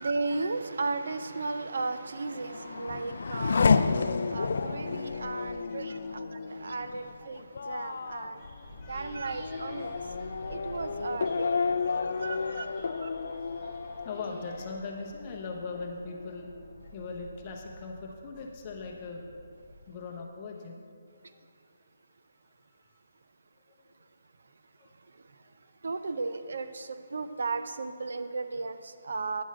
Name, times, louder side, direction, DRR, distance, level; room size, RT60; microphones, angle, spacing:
voice 1, 0.0-8.6 8.9-10.1 10.5-11.8 12.2-12.7 13.0-13.1 25.1-25.5 25.8-29.4, right 3 dB, 65° right, 10 dB, 0.5 m, -35 dB
Race car auto racing / Accelerating revving vroom, 2.1-15.4 15.7-16.4, left 5 dB, 55° left, 0.4 m, -31 dB
voice 2, 4.8-5.6 5.9-6.5 8.4-8.5 8.8-9.2 11.7-12.9 13.7-19.3 19.9-20.8 21.1-21.4 23.7-23.8 24.8-24.9, left 4 dB, 20° left, 0 dB, 0.9 m, -41 dB
sound 1, 8.4-14.7, equal, 20° right, 1.5 m, -53 dB
sound 2, 8.6-19.9, equal, 40° right, 1.5 m, -51 dB
9.4 x 6.1 x 6.3 m, 2.2 s
hypercardioid pair, 175°, 0 cm